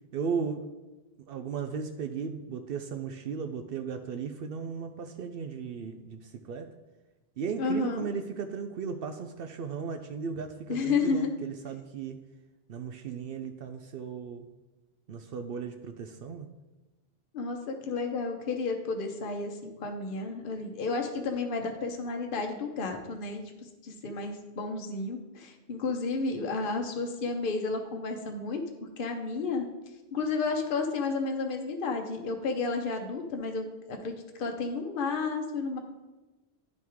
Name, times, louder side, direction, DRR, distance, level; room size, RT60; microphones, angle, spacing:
voice 1, 0.1-0.6 1.2-6.7 7.4-12.2 12.7-14.5 15.1-16.5, right 6 dB, 65° right, 7 dB, 0.7 m, -36 dB
voice 2, 7.6-8.0 10.7-11.3 17.3-23.4 23.8-28.6 29.0-29.7 30.1-34.1 34.4-35.8, left 4 dB, 55° left, 3 dB, 1.0 m, -31 dB
10.5 x 3.5 x 4.6 m, 1.1 s
omnidirectional pair, 1.1 m